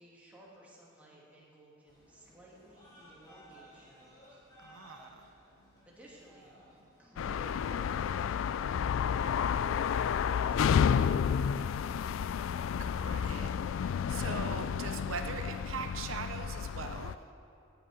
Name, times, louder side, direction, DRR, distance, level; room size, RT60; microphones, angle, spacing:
voice 1, 0.0-4.4 5.8-6.5 7.0-9.0 9.5-12.4, right 1 dB, 5° right, -6 dB, 2.4 m, -56 dB
sound 1, 1.9-10.1, equal, 20° left, 2.9 m, -59 dB
voice 2, 4.6-5.3 12.8-17.1, right 5 dB, 90° right, 7 dB, 0.7 m, -41 dB
sound 2, 7.2-17.1, left 7 dB, 75° left, 0.3 m, -31 dB
17.5 x 8.0 x 5.0 m, 2.5 s
head